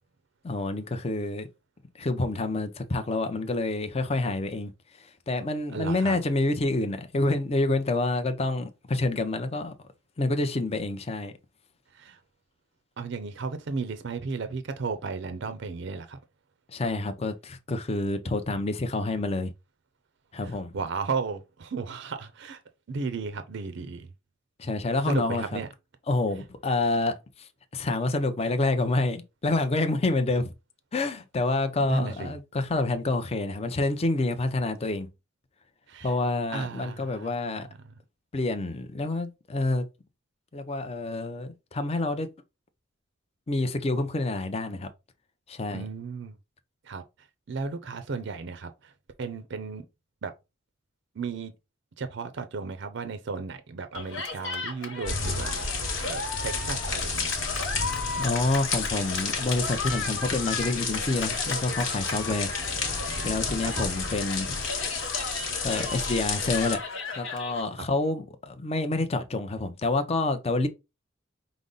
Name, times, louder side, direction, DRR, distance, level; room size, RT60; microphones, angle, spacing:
voice 1, 0.4-1.5 1.9-4.7 5.0-9.9 10.2-11.3 16.7-19.5 20.3-20.7 24.6-25.6 26.1-30.5 30.9-35.1 36.0-37.7 38.3-39.9 40.5-42.3 43.5-44.9 45.5-45.9 58.2-62.5 63.2-64.6 65.6-66.8 67.2-70.7, left 2 dB, 30° left, 0.5 m, -28 dB
voice 2, 5.7-6.2 11.9-12.2 13.0-16.2 20.4-22.6 22.9-24.1 25.0-25.7 31.9-32.3 35.9-36.1 36.5-37.6 45.7-46.4 46.8-47.0 47.5-48.9 49.2-49.8 50.2-50.3 51.2-51.5 52.0-57.4 62.2-62.3 63.6-63.9, right 4 dB, 60° right, 0.5 m, -34 dB
Cheering, 53.9-67.6, left 3 dB, 85° left, 1.1 m, -36 dB
sound 1, 55.1-66.8, left 4 dB, 65° left, 1.2 m, -31 dB
5.1 x 2.0 x 3.8 m
head